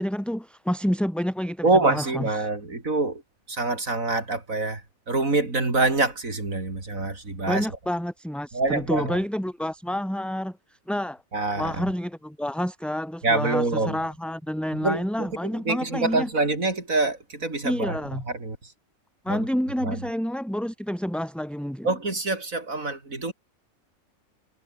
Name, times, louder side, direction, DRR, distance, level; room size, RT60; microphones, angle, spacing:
voice 1, 0.0-2.3 7.5-10.6 10.9-11.2 11.6-16.3 17.6-18.2 19.2-21.9, equal, ahead, 3.6 m, -28 dB
voice 2, 1.6-3.2 3.5-4.8 5.1-7.7 8.5-9.2 11.3-11.7 13.2-14.0 14.7-18.0 18.2-18.6 19.3-19.5 19.8-20.0 21.8-23.3, right 3 dB, 75° right, 4.8 m, -25 dB
omnidirectional pair, 1.4 m